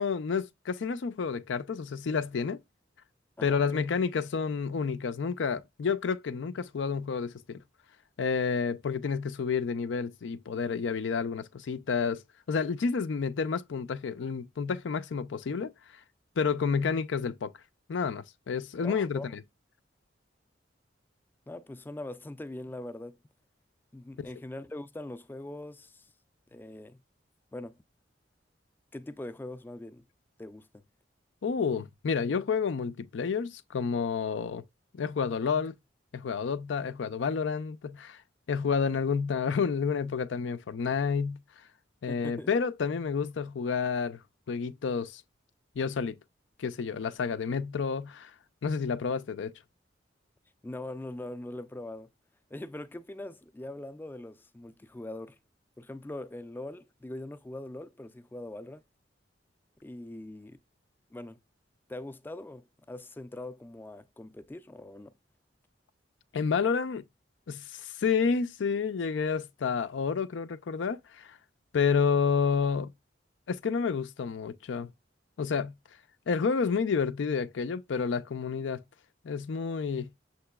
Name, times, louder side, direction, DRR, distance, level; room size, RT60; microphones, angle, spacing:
voice 1, 0.0-2.6 3.4-7.6 8.2-12.2 12.5-15.7 16.4-17.5 17.9-19.4 24.2-24.3 31.4-34.6 35.0-35.7 36.1-38.2 38.5-41.4 42.0-44.2 44.5-45.2 45.8-46.2 46.6-48.3 48.6-49.5 66.3-67.0 67.5-71.4 71.7-72.9 73.5-74.9 75.4-75.7 76.3-78.8 79.2-80.1, left 5 dB, 85° left, 0.4 m, -30 dB
voice 2, 3.4-3.9 18.8-19.3 21.5-23.2 23.9-26.1 26.5-27.0 27.5-27.8 28.9-30.0 30.4-30.8 42.1-42.5 50.6-52.1 52.5-55.4 55.8-58.8 59.8-60.6 61.1-61.4 61.9-65.1, left 1 dB, 10° left, 0.3 m, -42 dB
6.5 x 2.9 x 2.2 m
head